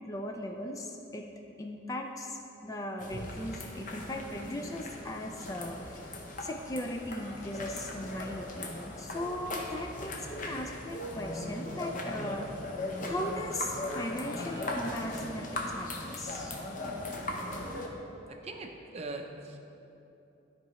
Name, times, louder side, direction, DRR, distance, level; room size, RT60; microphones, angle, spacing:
voice 1, 0.1-1.3 1.6-6.1 6.4-12.5 13.0-16.6, left 1 dB, 15° left, 3 dB, 0.3 m, -38 dB
sound 1, 3.0-17.9, left 1 dB, 45° left, 0.8 m, -38 dB
voice 2, 18.4-19.6, right 2 dB, 35° right, 3 dB, 0.5 m, -41 dB
13.0 x 4.7 x 3.1 m, 3.0 s
head